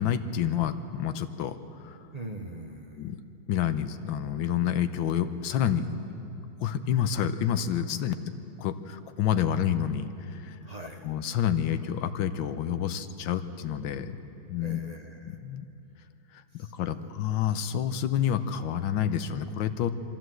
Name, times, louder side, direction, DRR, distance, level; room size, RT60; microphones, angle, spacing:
voice 1, 0.0-1.6 1.8-2.0 3.0-3.2 3.5-6.1 6.6-8.1 8.6-10.6 11.0-14.2 14.5-14.8 15.3-15.7 16.5-20.0, left 9 dB, 75° left, 10 dB, 1.5 m, -28 dB
voice 2, 2.1-3.1 10.6-11.1 14.6-15.4 16.5-17.1, right 1 dB, 30° right, 2 dB, 0.8 m, -43 dB
23.0 x 14.5 x 7.7 m, 2.8 s
omnidirectional pair, 2.3 m